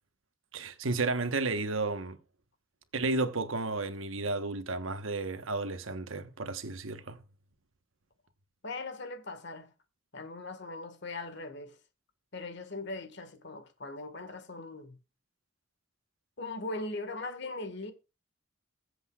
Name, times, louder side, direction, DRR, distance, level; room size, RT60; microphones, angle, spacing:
voice 1, 0.5-2.2 2.9-7.2, right 3 dB, 90° right, 1.2 m, -32 dB
voice 2, 8.6-9.7 10.1-11.8 12.3-15.0 16.4-17.9, left 2 dB, 60° left, 1.7 m, -40 dB
22.0 x 7.9 x 2.4 m
head